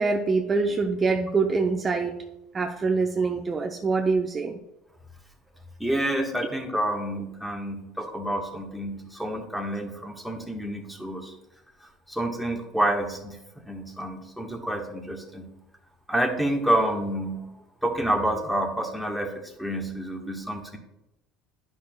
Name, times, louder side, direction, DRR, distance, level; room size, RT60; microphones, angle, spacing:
voice 1, 0.0-2.2 2.5-4.6, right 4 dB, 30° right, 3 dB, 0.6 m, -24 dB
voice 2, 5.8-11.3 12.1-13.4 13.7-15.5 16.1-17.5 17.8-20.8, right 1 dB, ahead, 2 dB, 1.4 m, -28 dB
10.0 x 5.9 x 2.3 m, 0.92 s
hypercardioid pair, 80°, 0 cm